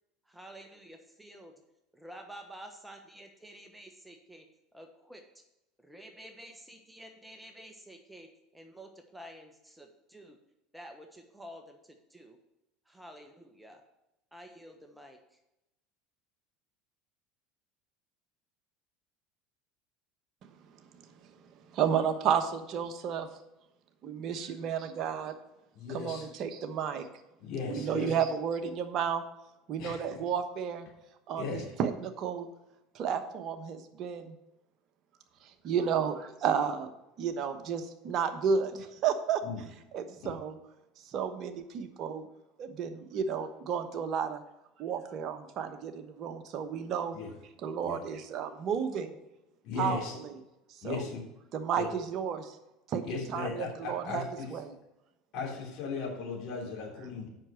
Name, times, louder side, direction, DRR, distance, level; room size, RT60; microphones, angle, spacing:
voice 1, 0.2-1.5 1.9-4.4 4.7-5.4 5.8-8.3 8.5-10.4 10.7-12.4 12.8-13.8 14.3-15.4, equal, 5° right, 4 dB, 1.2 m, -50 dB
voice 2, 20.9-23.3 24.0-25.3 25.9-27.1 27.7-29.2 29.7-30.9 31.3-32.5 32.9-34.3 35.4-36.9 37.2-39.4 39.9-40.6 41.0-42.3 42.6-44.4 44.8-47.2 47.6-49.2 49.8-50.4 50.7-51.1 51.5-52.6 52.9-53.0 53.3-54.2 54.5-54.7, right 7 dB, 50° right, 7 dB, 1.1 m, -32 dB
voice 3, 25.7-26.2 27.4-28.1 29.8-30.0 31.4-31.6 39.4-39.6 40.2-40.3 47.1-47.3 47.8-48.0 49.6-50.1 50.8-51.2 51.8-51.9 53.0-54.5 55.3-57.3, left 5 dB, 55° left, -1 dB, 3.2 m, -37 dB
7.9 x 5.8 x 6.1 m, 0.92 s
hypercardioid pair, 75°, 0 cm